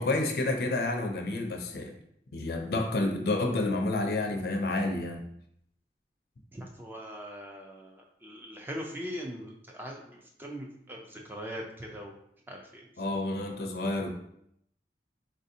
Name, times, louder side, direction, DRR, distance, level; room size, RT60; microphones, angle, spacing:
voice 1, 0.0-1.9 2.3-5.2 13.0-14.1, left 2 dB, 60° left, 3 dB, 0.5 m, -29 dB
voice 2, 6.5-12.2 12.5-12.9, equal, 10° right, 0 dB, 0.3 m, -41 dB
4.0 x 2.6 x 2.6 m, 0.73 s
head